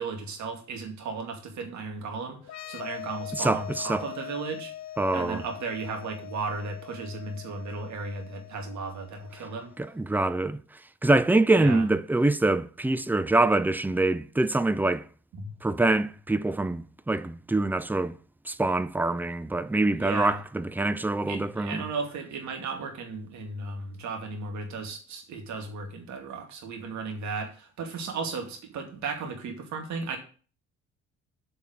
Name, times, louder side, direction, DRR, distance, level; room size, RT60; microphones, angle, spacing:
voice 1, 0.0-4.7 5.1-9.7 11.5-11.9 15.4-15.5 20.0-20.4 21.3-30.2, right 4 dB, 55° right, 2.4 m, -35 dB
sound 1, 2.4-9.9, left 12 dB, 50° left, 0.7 m, -42 dB
voice 2, 3.4-4.0 5.0-5.4 10.0-10.6 11.0-15.0 15.6-18.1 18.5-21.8, right 2 dB, 5° right, 0.6 m, -25 dB
8.4 x 5.4 x 7.7 m
figure-of-eight pair, 50°, 35 cm